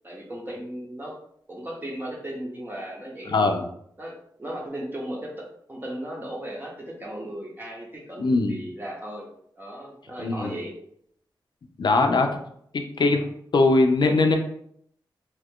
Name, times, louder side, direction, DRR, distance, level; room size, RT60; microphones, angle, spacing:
voice 1, 0.0-1.2 1.5-3.5 4.0-9.3 9.6-10.7, right 1 dB, 25° right, -2 dB, 0.8 m, -36 dB
voice 2, 8.2-8.6 10.2-10.5 11.8-12.4 12.7-13.3 13.5-14.4, left 3 dB, 65° left, 4 dB, 0.5 m, -20 dB
2.8 x 2.3 x 3.6 m, 0.68 s
cardioid pair, 65°, 8 cm